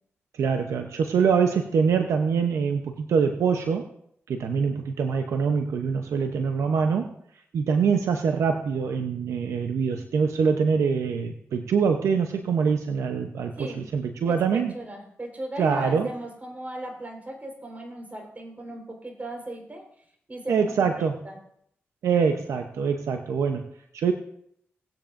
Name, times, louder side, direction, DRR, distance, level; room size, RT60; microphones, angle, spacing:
voice 1, 0.3-3.9 4.3-7.1 7.5-14.7 15.6-16.1 20.5-21.2 22.0-23.7 23.9-24.1, right 6 dB, 90° right, 5 dB, 0.7 m, -24 dB
voice 2, 14.2-19.8 20.3-20.6 21.0-21.4, right 1 dB, 35° right, 1 dB, 4.2 m, -37 dB
18.5 x 9.0 x 2.6 m, 0.69 s
cardioid pair, 50°, 5 cm